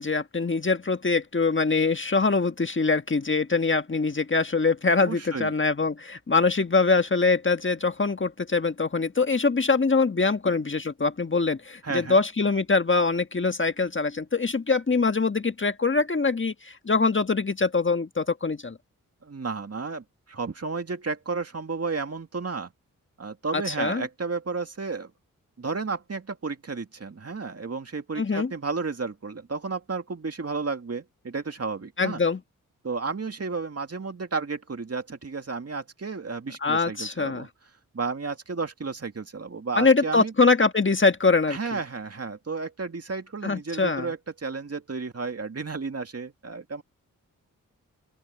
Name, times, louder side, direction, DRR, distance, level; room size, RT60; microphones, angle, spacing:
voice 1, 0.0-18.8 23.5-24.0 28.2-28.5 32.0-32.4 36.6-37.5 39.8-41.6 43.4-44.1, left 4 dB, 35° left, 1.6 m, -23 dB
voice 2, 5.0-5.5 11.8-12.2 19.2-22.7 23.2-25.1 25.6-32.2 32.8-37.5 37.9-40.3 41.5-46.8, right 4 dB, 45° right, 2.4 m, -32 dB
open air
cardioid pair, 45°, 34 cm